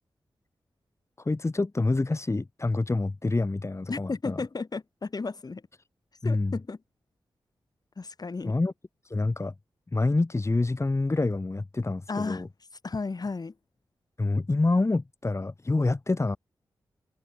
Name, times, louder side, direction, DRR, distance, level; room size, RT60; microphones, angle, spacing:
voice 1, 1.2-4.4 6.2-6.5 8.5-8.7 9.0-9.5 9.9-12.5 14.2-16.4, left 2 dB, 30° left, 2.7 m, -27 dB
voice 2, 3.9-5.6 6.2-6.8 8.0-8.5 12.1-12.4 12.8-13.5, left 4 dB, 50° left, 6.2 m, -33 dB
cardioid pair, 50°, 9 cm